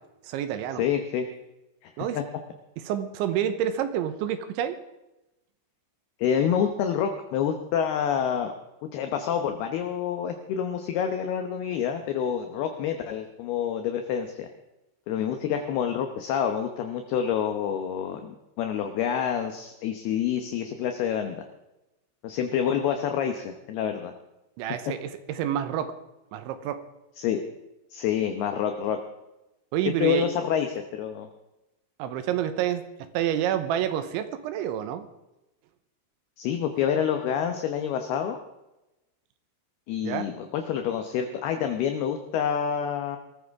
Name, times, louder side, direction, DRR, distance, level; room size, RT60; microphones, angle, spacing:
voice 1, 0.2-0.8 2.0-2.2 2.8-4.8 24.6-26.0 26.3-26.8 29.7-30.3 32.0-32.9 33.1-35.1 40.0-40.3, right 10 dB, 85° right, 10 dB, 3.4 m, -28 dB
voice 2, 0.8-1.2 1.8-2.2 6.2-8.5 8.9-14.5 15.1-21.5 22.2-24.1 27.2-27.4 27.9-29.0 30.0-31.3 36.4-38.4 39.9-43.2, left 8 dB, 70° left, 6 dB, 2.6 m, -27 dB
21.5 x 14.0 x 3.6 m, 0.95 s
omnidirectional pair, 5.3 m